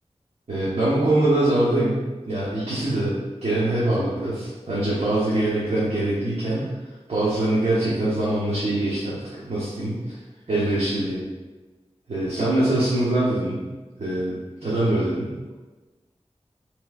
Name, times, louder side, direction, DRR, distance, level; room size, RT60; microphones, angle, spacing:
voice 1, 0.5-6.7 7.1-10.2 10.5-11.2 12.1-13.7 14.0-15.4, right 1 dB, 65° right, -9 dB, 0.9 m, -23 dB
4.1 x 3.0 x 2.3 m, 1.2 s
wide cardioid pair, 50°, 11 cm